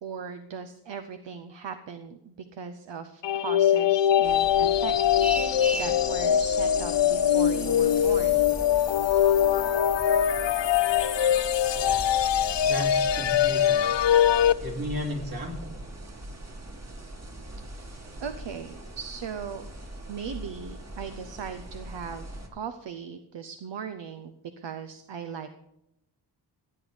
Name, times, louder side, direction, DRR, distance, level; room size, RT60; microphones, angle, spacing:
voice 1, 0.0-8.5 17.6-17.9 18.2-19.7 20.1-25.5, right 6 dB, 75° right, 8 dB, 0.8 m, -39 dB
sound 1, 3.2-14.5, left 10 dB, 75° left, 0.6 m, -22 dB
sound 2, 4.2-22.5, right 1 dB, 35° right, 1.9 m, -41 dB
Vehicle horn car horn honking, 5.2-6.0, right 2 dB, 5° right, 0.6 m, -33 dB
voice 2, 12.6-13.9 14.6-15.7, left 1 dB, 55° right, 0 dB, 2.9 m, -34 dB
15.5 x 8.1 x 5.0 m, 0.84 s
wide cardioid pair, 80°, 44 cm